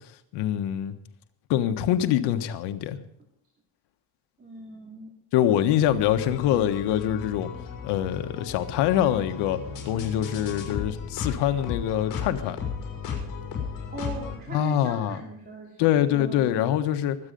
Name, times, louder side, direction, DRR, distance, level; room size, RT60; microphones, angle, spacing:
voice 1, 0.3-0.9 1.5-3.0 5.3-7.5 7.8-9.6 9.8-12.6 14.5-15.2 15.8-17.2, left 11 dB, 90° left, 9 dB, 1.4 m, -24 dB
voice 2, 4.4-5.2 13.9-16.6, right 3 dB, 25° right, 0 dB, 2.9 m, -39 dB
sound 1, 5.9-14.4, left 6 dB, 50° left, 5.9 m, -35 dB
23.5 x 9.0 x 5.4 m, 0.69 s
cardioid pair, 155°, 40 cm